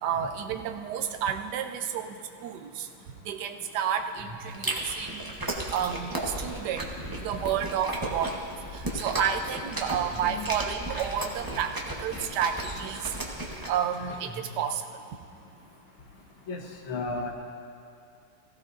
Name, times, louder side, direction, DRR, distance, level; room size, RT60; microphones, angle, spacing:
voice 1, 0.0-2.1 2.4-2.9 3.2-5.3 5.7-6.9 7.2-8.3 8.7-13.1 13.7-14.8, right 8 dB, 70° right, 6 dB, 1.0 m, -30 dB
Chewing mastication, 4.5-13.7, right 1 dB, 25° right, 0.5 m, -35 dB
sound 1, 6.4-14.7, left 1 dB, 40° left, 2.1 m, -50 dB
voice 2, 16.9-17.3, left 3 dB, 70° left, 2 dB, 1.9 m, -33 dB
16.0 x 16.0 x 2.6 m, 2.5 s
omnidirectional pair, 2.3 m